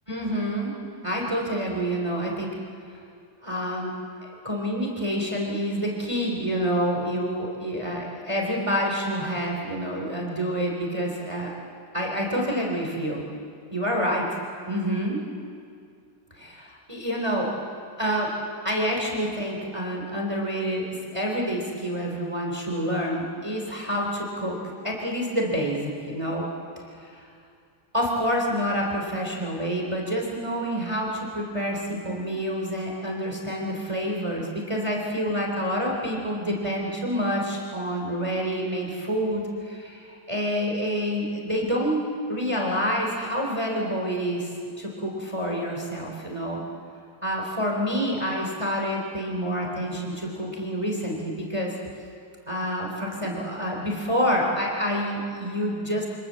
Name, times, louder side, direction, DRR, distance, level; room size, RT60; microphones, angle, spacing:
voice 1, 0.1-0.7 1.0-2.5 3.4-3.9 4.2-11.5 11.9-13.2 13.7-14.3 14.7-15.2 16.4-17.5 18.0-18.3 18.6-20.8 21.1-24.6 24.8-26.4 27.0-27.2 27.9-46.6 47.2-51.7 52.5-56.1, equal, 15° right, -1 dB, 3.5 m, -28 dB
28.5 x 26.0 x 7.6 m, 2.4 s
omnidirectional pair, 2.1 m